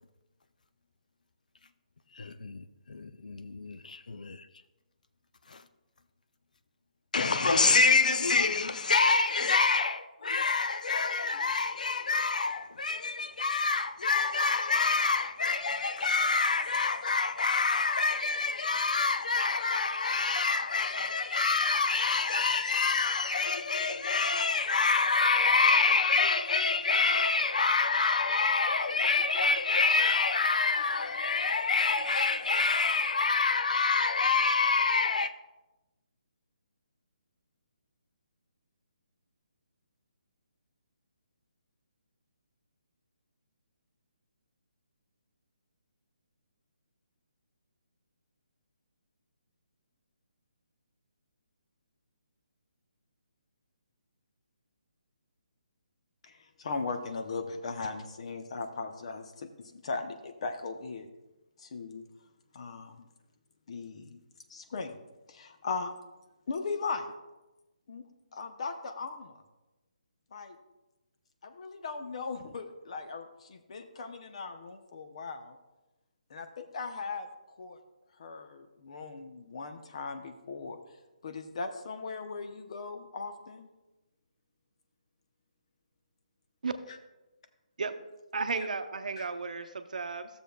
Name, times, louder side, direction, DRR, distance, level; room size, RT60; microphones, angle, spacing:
voice 1, 2.2-4.5 5.5-5.6 7.1-35.3, left 4 dB, 75° left, 0.5 m, -27 dB
voice 2, 56.2-61.1 61.6-62.0 62.5-63.1 63.7-64.2 64.5-65.0 65.3-65.9 66.5-67.1 67.9-68.0 68.3-69.4 70.3-70.6 71.4-75.6 76.3-77.8 78.2-80.8 81.2-83.7 89.2-89.3, left 4 dB, 50° left, 0.8 m, -38 dB
voice 3, 88.3-90.3, right 4 dB, 75° right, 0.7 m, -34 dB
13.0 x 7.0 x 2.3 m
hypercardioid pair, 160°, 4 cm